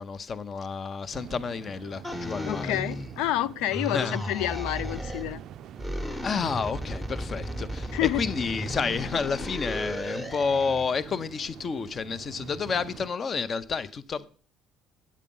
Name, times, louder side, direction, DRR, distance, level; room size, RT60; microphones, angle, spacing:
voice 1, 0.0-2.8 3.9-4.2 6.2-14.3, left 5 dB, 30° left, 0.6 m, -30 dB
sound 1, 1.1-13.1, right 9 dB, 50° right, 0.4 m, -45 dB
sound 2, 2.0-3.4 3.7-5.3 5.8-11.0, equal, 10° left, 1.0 m, -35 dB
voice 2, 2.4-5.4 7.9-8.2, left 13 dB, 80° left, 0.4 m, -29 dB
8.5 x 8.4 x 5.3 m
cardioid pair, 160°, 0 cm